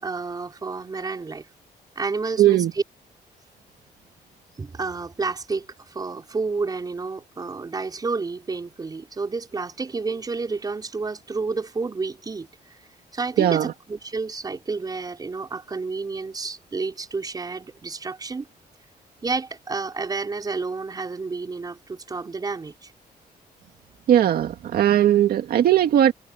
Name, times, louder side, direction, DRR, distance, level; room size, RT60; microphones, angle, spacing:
voice 1, 0.0-1.5 2.0-2.8 4.6-12.5 13.1-18.5 19.2-22.9, right 4 dB, 25° right, 5.1 m, -30 dB
voice 2, 2.4-2.7 13.4-13.7 24.1-26.1, right 11 dB, 75° right, 2.1 m, -18 dB
cardioid pair, 145°, 16 cm